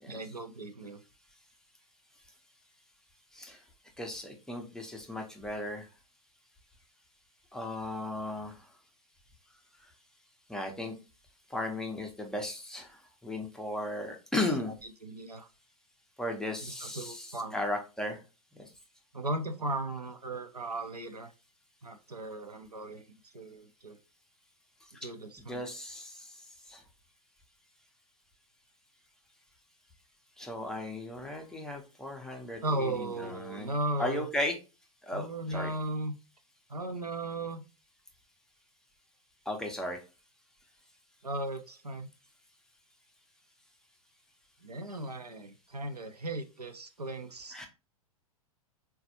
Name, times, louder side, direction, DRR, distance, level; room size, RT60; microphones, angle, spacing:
voice 1, 0.1-1.0 15.0-15.5 16.6-17.6 19.1-21.3 21.8-23.1 23.3-24.0 25.0-25.6 32.6-34.3 35.1-36.2 36.7-37.6 41.2-42.1 44.6-47.6, right 1 dB, 90° right, 7 dB, 0.5 m, -36 dB
voice 2, 4.0-5.9 7.5-8.7 10.5-11.0 11.5-14.7 16.2-18.2 18.5-18.7 25.5-26.4 26.7-26.8 30.4-33.7 34.0-34.6 35.0-35.7 39.5-40.0 47.5-47.7, left 1 dB, 5° left, 2 dB, 0.5 m, -36 dB
3.9 x 2.2 x 2.7 m, 0.30 s
figure-of-eight pair, 105°, 19 cm